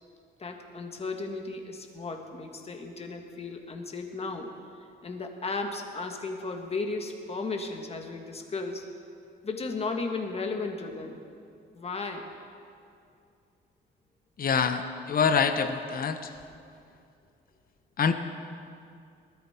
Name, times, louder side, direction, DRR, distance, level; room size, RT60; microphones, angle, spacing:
voice 1, 0.4-4.5 5.0-8.8 9.4-11.2 11.7-12.3, left 3 dB, 30° left, 3 dB, 1.7 m, -35 dB
voice 2, 14.4-16.2 18.0-18.1, left 6 dB, 45° left, 8 dB, 1.0 m, -25 dB
19.5 x 13.5 x 4.4 m, 2.4 s
cardioid pair, 90°, 20 cm